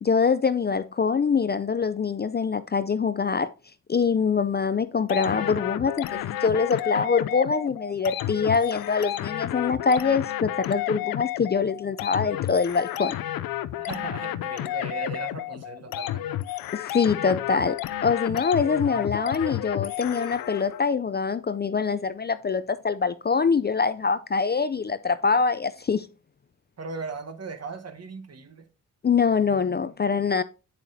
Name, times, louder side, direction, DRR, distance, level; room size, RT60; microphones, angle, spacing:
voice 1, 0.0-3.5 3.9-13.1 16.7-26.1 29.0-30.4, left 5 dB, 30° left, 0.4 m, -24 dB
sound 1, 5.1-20.8, left 13 dB, 85° left, 0.5 m, -31 dB
voice 2, 13.8-16.4 26.8-28.7, right 4 dB, 45° right, 1.2 m, -37 dB
8.0 x 7.1 x 2.7 m
cardioid pair, 55°, 34 cm